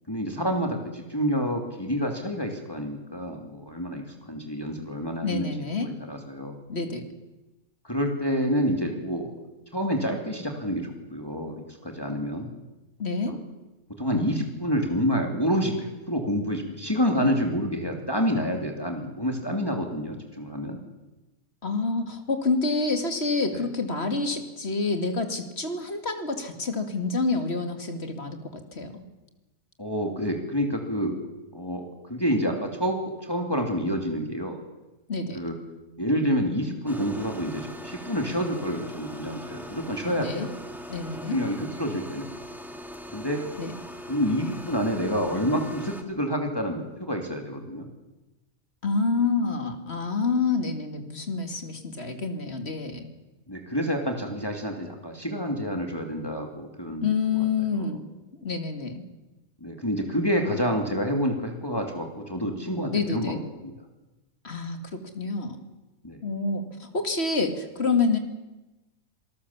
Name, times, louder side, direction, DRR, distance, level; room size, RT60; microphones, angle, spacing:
voice 1, 0.1-5.5 5.8-6.6 7.8-9.3 9.7-11.6 11.8-12.5 13.3-13.4 14.0-20.8 23.5-23.6 29.8-31.2 31.5-31.8 32.1-34.6 35.3-35.6 36.0-40.5 41.3-42.3 43.1-43.4 44.1-47.9 53.5-57.1 57.3-57.4 57.7-58.0 59.6-63.7 66.0-66.2, equal, 15° left, 2 dB, 2.8 m, -28 dB
voice 2, 5.2-5.9 6.7-7.0 13.0-13.3 21.6-29.0 35.1-35.4 40.1-40.5 40.9-41.4 43.6-43.7 48.8-53.1 57.0-58.0 58.4-59.0 62.9-63.4 64.4-65.6 66.2-68.2, left 4 dB, 45° left, 6 dB, 2.5 m, -28 dB
sound 1, 36.9-46.0, equal, ahead, 2.0 m, -41 dB
26.5 x 19.0 x 7.3 m, 1.1 s
omnidirectional pair, 1.5 m